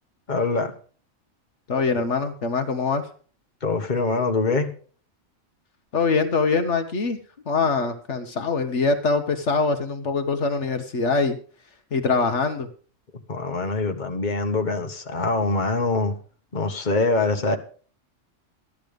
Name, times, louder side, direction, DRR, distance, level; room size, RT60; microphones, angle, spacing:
voice 1, 0.3-0.7 3.6-4.7 13.1-16.2 16.5-17.6, left 3 dB, 40° left, 5 dB, 1.6 m, -24 dB
voice 2, 1.7-3.1 5.9-7.2 7.5-11.4 11.9-12.7, left 4 dB, 70° left, 7 dB, 1.5 m, -23 dB
15.0 x 11.0 x 5.2 m, 0.42 s
omnidirectional pair, 1.3 m